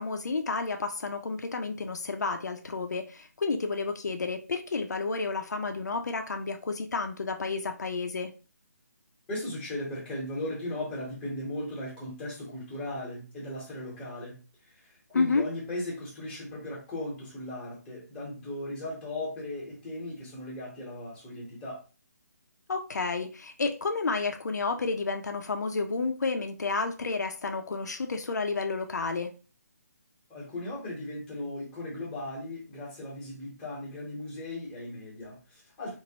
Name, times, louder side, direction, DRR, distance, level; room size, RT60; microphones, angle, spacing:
voice 1, 0.0-8.3 15.1-15.4 22.7-29.3, left 4 dB, 80° left, 0.5 m, -31 dB
voice 2, 9.3-14.4 14.7-21.8 30.3-35.9, left 1 dB, 10° left, 1.0 m, -37 dB
3.0 x 2.5 x 2.9 m
hypercardioid pair, 165°, 9 cm